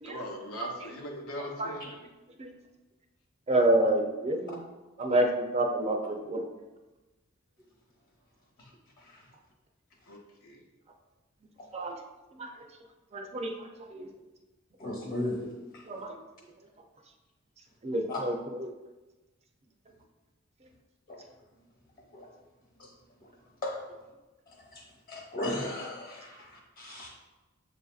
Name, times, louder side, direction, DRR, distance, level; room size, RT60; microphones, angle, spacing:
voice 1, 0.0-1.9 10.1-10.6, left 1 dB, 85° left, -1 dB, 0.8 m, -40 dB
voice 2, 3.5-4.6 5.0-6.4 11.7-11.9 12.4-12.5 13.1-13.5 13.9-14.1 15.9-16.1 17.8-18.7, right 1 dB, 30° right, 3 dB, 0.5 m, -28 dB
voice 3, 14.8-15.8 18.1-18.2 21.1-21.2 22.1-22.3 22.8-22.9 23.6-23.8 24.7-24.8 25.1-27.2, left 1 dB, 45° left, -2 dB, 1.1 m, -36 dB
7.3 x 2.6 x 2.4 m, 1.1 s
head